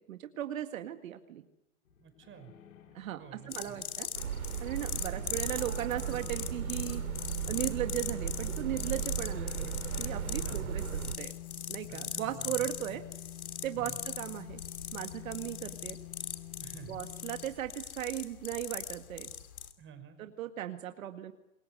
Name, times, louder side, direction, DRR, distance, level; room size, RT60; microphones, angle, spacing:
voice 1, 0.0-1.4 2.9-4.1 4.6-7.0 7.5-9.7 10.0-11.3 11.7-13.0 13.6-14.6 14.9-16.0 16.9-19.3 20.2-21.3, right 12 dB, 70° right, 7 dB, 2.0 m, -37 dB
sound 1, 1.9-17.4, left 16 dB, 70° left, 5.8 m, -48 dB
voice 2, 2.0-2.5 3.2-3.8 5.1-5.3 9.3-9.8 10.4-10.7 11.9-13.0 13.7-14.0 16.6-17.0 19.8-20.2, right 10 dB, 30° right, 9 dB, 5.6 m, -50 dB
sound 2, 3.5-19.7, left 8 dB, 85° left, 3.0 m, -41 dB
sound 3, 4.1-11.2, right 8 dB, 90° right, 2.5 m, -36 dB
27.5 x 23.0 x 6.7 m, 0.90 s
hypercardioid pair, 120°, 42 cm